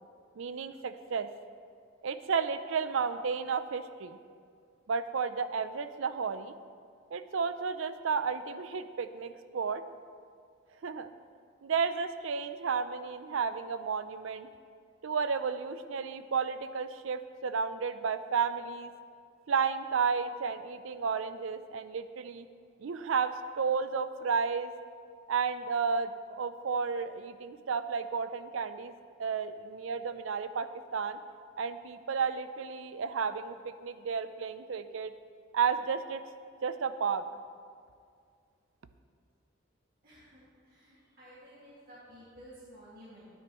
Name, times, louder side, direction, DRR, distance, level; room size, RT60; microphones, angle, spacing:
voice 1, 0.4-1.3 2.0-4.2 4.9-6.5 7.1-9.8 10.8-11.1 11.6-14.5 15.0-18.9 19.5-22.5 22.8-24.7 25.3-28.9 29.2-31.2 31.6-35.1 35.5-36.2 36.6-37.2, right 5 dB, 75° right, 12 dB, 0.4 m, -32 dB
voice 2, 40.0-43.3, equal, 45° right, -9 dB, 2.0 m, -53 dB
13.0 x 9.2 x 3.0 m, 2.2 s
head